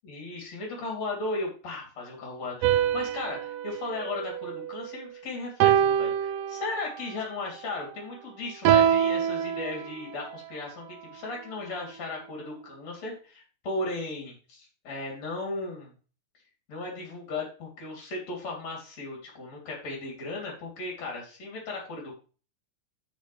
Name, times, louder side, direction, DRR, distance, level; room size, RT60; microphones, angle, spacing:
voice 1, 0.0-15.9 16.7-22.1, left 2 dB, 60° left, -2 dB, 4.2 m, -36 dB
sound 1, 2.6-5.0 5.6-7.1 8.6-10.3, right 10 dB, 80° right, 1.5 m, -25 dB
15.0 x 5.1 x 3.3 m, 0.37 s
omnidirectional pair, 3.5 m